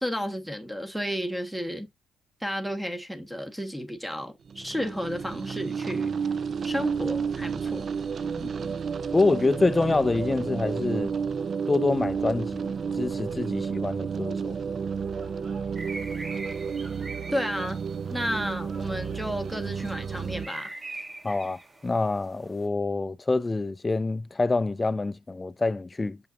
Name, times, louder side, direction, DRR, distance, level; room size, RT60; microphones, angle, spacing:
voice 1, 0.0-1.9 2.4-6.1 6.6-7.9 17.3-17.8 18.1-20.7, equal, 5° right, 1.3 m, -32 dB
sound 1, 4.5-20.5, right 6 dB, 50° right, 0.4 m, -31 dB
voice 2, 8.4-8.8 9.1-11.1 11.7-14.6 21.2-26.2, left 3 dB, 20° left, 0.4 m, -26 dB
sound 2, 14.6-20.4, right 3 dB, 65° right, 3.4 m, -54 dB
sound 3, 15.8-22.7, right 2 dB, 20° right, 1.1 m, -43 dB
7.0 x 5.6 x 2.5 m
cardioid pair, 90°, 0 cm